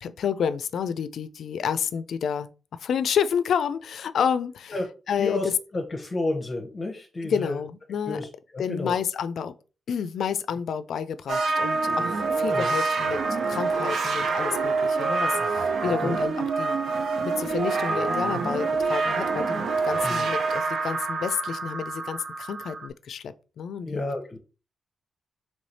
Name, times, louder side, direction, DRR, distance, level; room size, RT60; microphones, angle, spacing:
voice 1, 0.0-2.5 2.8-4.7 5.1-5.4 7.2-8.2 8.6-9.6 9.9-16.8 17.2-24.0, left 7 dB, 80° left, 0.3 m, -30 dB
voice 2, 5.2-7.6 8.1-9.0 12.5-12.8 15.8-16.2 20.0-20.3 23.8-24.4, left 2 dB, 35° left, 0.7 m, -31 dB
sound 1, 11.3-22.9, right 4 dB, 75° right, 0.5 m, -26 dB
3.3 x 3.1 x 4.1 m
cardioid pair, 110°, 0 cm